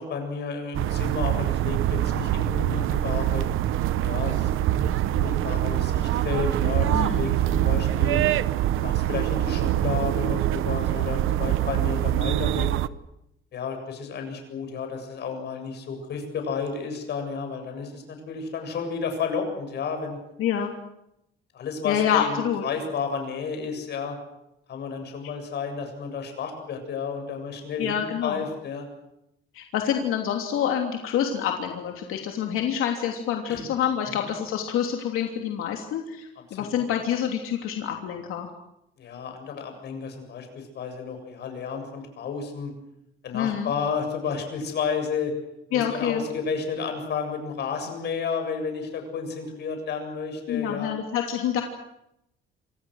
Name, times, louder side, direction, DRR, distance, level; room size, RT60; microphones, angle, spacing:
voice 1, 0.0-3.5 4.0-8.3 8.8-12.7 13.5-20.2 21.5-24.2 24.7-28.9 33.5-33.7 34.1-34.2 36.5-36.8 39.0-42.7 43.2-45.3 45.7-50.9, left 5 dB, 55° left, 5 dB, 7.4 m, -32 dB
sound 1, 0.7-12.9, right 13 dB, 75° right, 0.9 m, -24 dB
voice 2, 6.9-7.3 20.4-20.7 21.8-22.6 27.8-28.4 29.5-38.5 43.3-43.7 45.7-46.2 50.5-51.6, left 9 dB, 90° left, 2 dB, 3.1 m, -27 dB
28.5 x 26.5 x 6.5 m, 0.82 s
cardioid pair, 170°, 21 cm